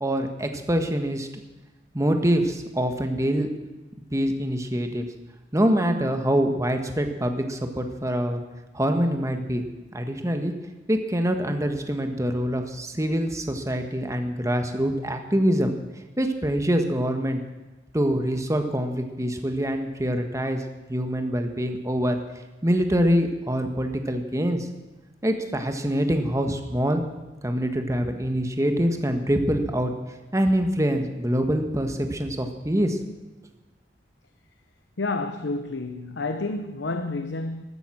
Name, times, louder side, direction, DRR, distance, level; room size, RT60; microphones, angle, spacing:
voice 1, 0.0-1.4 1.9-3.5 4.1-5.1 5.5-8.4 8.7-9.6 9.9-10.5 10.9-15.7 16.2-17.4 17.9-20.6 20.9-22.2 22.6-24.7 25.2-27.0 27.4-29.9 30.3-33.0, equal, 20° right, 5 dB, 1.5 m, -25 dB
voice 2, 35.0-37.6, left 3 dB, 85° left, 8 dB, 0.8 m, -29 dB
14.5 x 12.5 x 6.3 m, 1.1 s
head